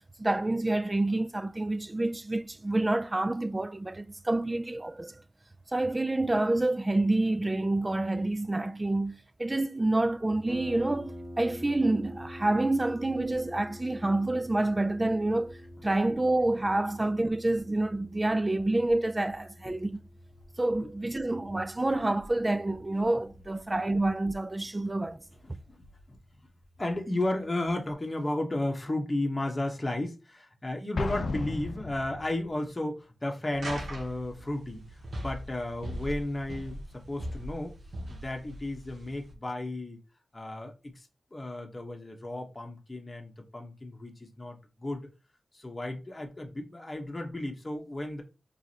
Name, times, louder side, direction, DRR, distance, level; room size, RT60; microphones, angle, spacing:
voice 1, 0.2-5.2 5.7-20.0 20.6-25.2, right 2 dB, 20° right, 0.3 m, -28 dB
Harp, 10.5-27.9, equal, 60° right, 2.0 m, -47 dB
voice 2, 25.4-26.2 26.8-37.7 38.1-40.0 40.3-45.0 45.5-48.2, left 1 dB, 20° left, 1.1 m, -34 dB
Explosion, 31.0-32.6, left 3 dB, 70° left, 0.5 m, -34 dB
sound 1, 33.5-39.3, equal, 75° right, 1.0 m, -40 dB
4.7 x 3.2 x 2.9 m
wide cardioid pair, 100°, 0 cm